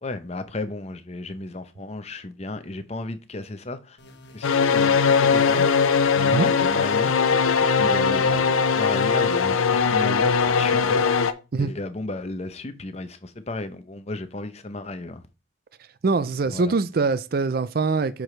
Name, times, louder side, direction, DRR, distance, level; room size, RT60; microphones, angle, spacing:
voice 1, 0.0-4.0 4.3-5.7 6.1-7.1 7.7-11.2 11.6-15.2 16.5-16.7, left 2 dB, 30° left, 0.7 m, -34 dB
sound 1, 4.0-9.1, left 1 dB, 55° left, 1.2 m, -48 dB
sound 2, 4.4-11.3, left 5 dB, 90° left, 0.6 m, -20 dB
voice 2, 16.0-18.2, right 4 dB, 45° right, 0.4 m, -23 dB
8.7 x 4.8 x 3.2 m
head